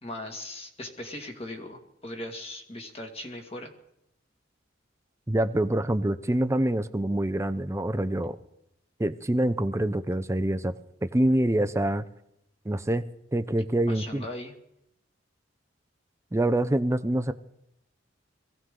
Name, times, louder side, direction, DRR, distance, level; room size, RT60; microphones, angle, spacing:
voice 1, 0.0-3.7 13.9-14.5, left 1 dB, 30° left, 3 dB, 1.9 m, -39 dB
voice 2, 5.3-8.4 9.0-10.7 11.0-12.0 12.7-13.1 13.3-14.2 16.3-17.3, right 1 dB, 15° right, 12 dB, 0.5 m, -25 dB
22.0 x 16.0 x 3.8 m, 0.81 s
head